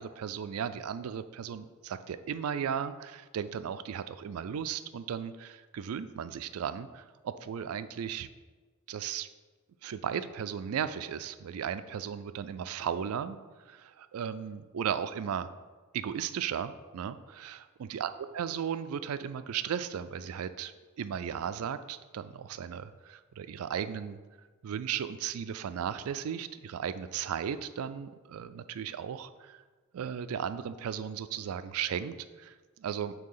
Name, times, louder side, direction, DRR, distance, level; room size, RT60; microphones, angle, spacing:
voice 1, 0.0-8.3 8.9-9.3 9.8-13.4 13.7-15.5 15.9-17.6 17.9-18.1 18.3-24.2 24.6-29.6 29.9-33.1, right 8 dB, 75° right, 12 dB, 0.3 m, -36 dB
7.6 x 2.8 x 5.5 m, 1.4 s
head